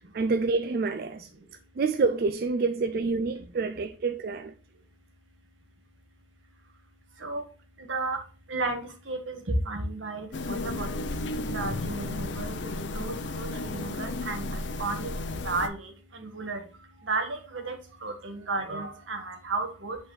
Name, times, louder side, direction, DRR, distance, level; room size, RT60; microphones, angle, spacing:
voice 1, 0.1-1.3 1.8-4.5, right 4 dB, 50° right, 0.4 m, -27 dB
voice 2, 7.9-8.2 8.5-11.1 11.5-14.5 14.8-15.1 15.4-16.6 17.1-17.8 18.0-20.0, right 3 dB, 90° right, 1.4 m, -33 dB
sound 1, 10.3-15.7, left 2 dB, 70° left, 0.6 m, -33 dB
7.9 x 4.2 x 3.2 m
head